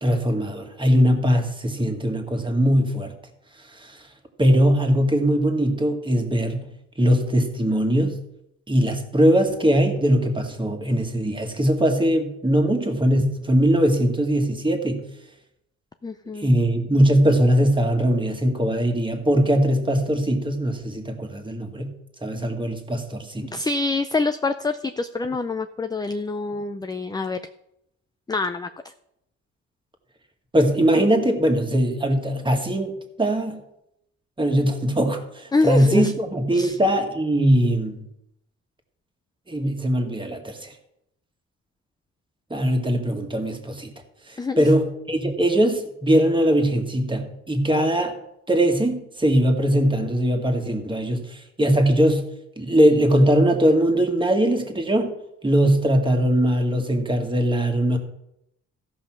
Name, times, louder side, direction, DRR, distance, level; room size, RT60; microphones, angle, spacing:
voice 1, 0.0-3.1 3.7-4.0 4.4-6.7 7.0-8.2 8.7-15.1 16.4-21.9 22.2-23.7 30.5-33.6 34.4-38.1 39.5-40.7 42.5-43.9 44.3-48.2 48.5-52.3 52.6-55.1 55.4-58.0, equal, 15° right, 4 dB, 1.8 m, -21 dB
voice 2, 16.0-16.5 23.5-27.4 28.3-28.9 35.5-36.1 36.5-36.8 44.4-44.6, left 3 dB, 15° left, 9 dB, 0.5 m, -26 dB
14.0 x 5.5 x 6.1 m, 0.82 s
cardioid pair, 90°, 30 cm